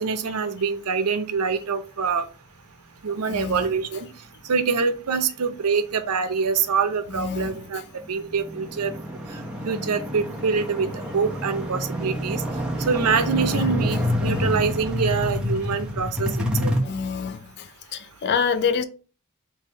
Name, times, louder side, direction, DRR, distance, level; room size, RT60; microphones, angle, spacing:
voice 1, 0.0-2.2 3.0-4.1 4.5-7.8 8.1-8.9 9.6-12.4 12.9-16.3 16.6-16.7, right 5 dB, 85° right, 0.6 m, -25 dB
voice 2, 7.2-7.5 16.8-17.4 17.9-18.8, left 6 dB, 50° left, 0.4 m, -25 dB
sound 1, 7.5-7.6 8.0-16.8, left 1 dB, 5° right, 0.7 m, -28 dB
3.4 x 3.2 x 4.4 m
head